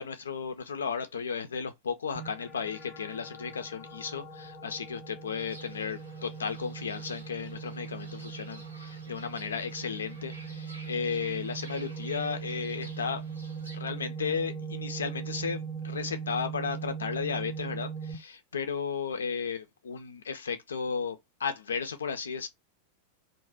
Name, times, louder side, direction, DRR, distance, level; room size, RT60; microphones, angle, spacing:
voice 1, 0.0-13.2 13.7-22.5, left 6 dB, 70° left, 0.3 m, -34 dB
sound 1, 2.2-18.2, right 6 dB, 10° left, 0.6 m, -40 dB
Fowl / Bird, 5.4-13.8, right 1 dB, 80° right, 0.7 m, -51 dB
2.5 x 2.1 x 3.2 m
figure-of-eight pair, 90°, 0 cm